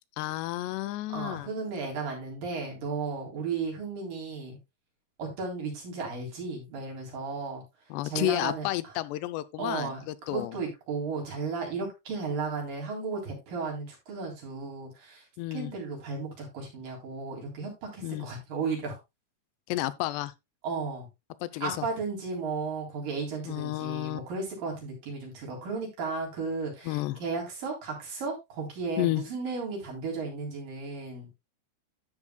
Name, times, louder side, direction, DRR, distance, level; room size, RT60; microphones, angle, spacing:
voice 1, 0.2-1.5 7.9-10.6 15.4-15.7 18.0-18.3 19.7-20.3 21.4-21.9 23.5-24.2 26.9-27.2 29.0-29.2, left 16 dB, 85° left, 2.8 m, -31 dB
voice 2, 1.1-4.6 5.2-7.6 8.1-8.7 9.6-10.0 10.3-15.2 15.5-19.0 20.6-21.1 21.6-31.3, right 4 dB, 55° right, 5.1 m, -34 dB
13.0 x 7.1 x 2.3 m
omnidirectional pair, 4.8 m